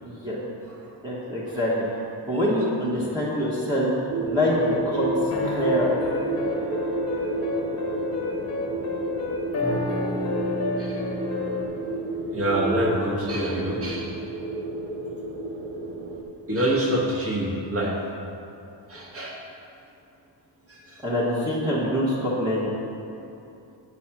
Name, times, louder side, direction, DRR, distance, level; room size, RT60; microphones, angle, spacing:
voice 1, 0.0-0.4 1.0-1.8 2.2-3.9 4.2-5.1 5.4-6.0 21.0-22.7, equal, 10° right, -8 dB, 1.2 m, -25 dB
sound 1, 4.1-16.2, right 2 dB, 75° right, 0.8 m, -31 dB
sound 2, 4.6-11.6, left 3 dB, 35° left, 1.0 m, -30 dB
voice 2, 12.3-14.1 16.5-17.9 18.9-19.4 20.7-21.0, right 1 dB, 30° right, -3 dB, 1.3 m, -26 dB
8.5 x 4.1 x 5.9 m, 2.7 s
wide cardioid pair, 140°, 45 cm